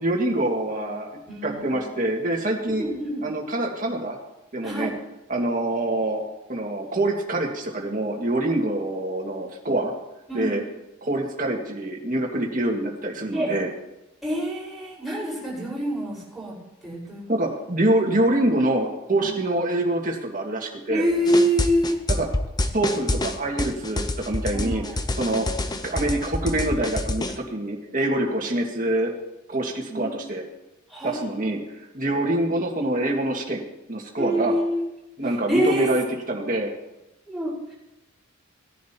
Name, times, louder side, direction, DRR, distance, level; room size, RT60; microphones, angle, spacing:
voice 1, 0.0-1.1 1.4-2.8 3.2-4.2 4.5-4.9 5.3-6.2 6.5-9.9 10.3-10.6 11.0-13.7 17.3-21.0 22.1-22.3 22.7-24.8 25.2-25.5 25.8-29.1 29.5-30.4 31.0-31.6 31.9-34.5 35.2-36.7, right 1 dB, 40° right, 0 dB, 1.9 m, -25 dB
voice 2, 1.3-1.8 2.7-3.3 4.6-4.9 8.4-8.5 10.3-10.6 13.3-13.5 14.2-16.6 16.8-17.2 19.2-19.3 20.9-22.0 23.1-23.2 24.5-24.9 25.2-25.4 25.6-26.0 29.9-30.4 30.9-31.5 34.2-34.8 35.5-35.9 37.3-37.7, equal, ahead, -8 dB, 4.8 m, -26 dB
sound 1, 21.3-27.4, left 1 dB, 20° left, 0.6 m, -27 dB
19.0 x 10.5 x 2.9 m, 0.93 s
head